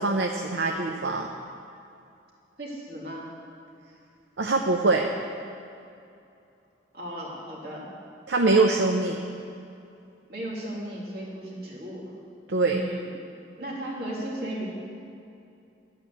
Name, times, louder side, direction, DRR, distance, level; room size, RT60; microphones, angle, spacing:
voice 1, 0.0-1.3 4.4-5.1 8.3-9.2 12.5-12.8, right 3 dB, 80° right, 2 dB, 0.6 m, -23 dB
voice 2, 2.6-3.3 6.9-7.9 10.3-12.1 12.6-13.1 13.6-14.6, right 1 dB, 60° right, -4 dB, 2.2 m, -35 dB
11.5 x 4.9 x 8.1 m, 2.6 s
head